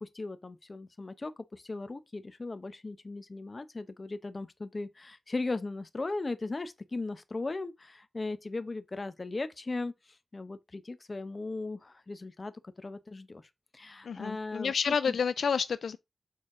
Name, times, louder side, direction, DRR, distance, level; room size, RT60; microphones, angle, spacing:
voice 1, 0.0-9.9 10.3-12.5 12.8-13.4 13.7-15.2, left 3 dB, 40° left, 0.8 m, -37 dB
voice 2, 14.0-16.0, left 6 dB, 90° left, 0.3 m, -29 dB
6.6 x 4.1 x 3.7 m
cardioid pair, 70°, 0 cm